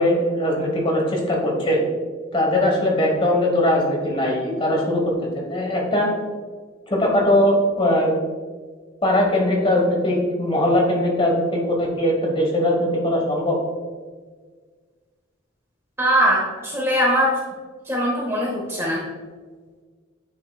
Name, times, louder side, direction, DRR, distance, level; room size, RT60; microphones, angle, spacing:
voice 1, 0.0-1.8 2.3-6.1 6.9-8.1 9.0-13.6, left 1 dB, 25° left, -1 dB, 1.2 m, -20 dB
voice 2, 16.0-17.3 17.9-19.0, equal, 10° right, -2 dB, 0.8 m, -21 dB
9.2 x 5.7 x 2.3 m, 1.5 s
head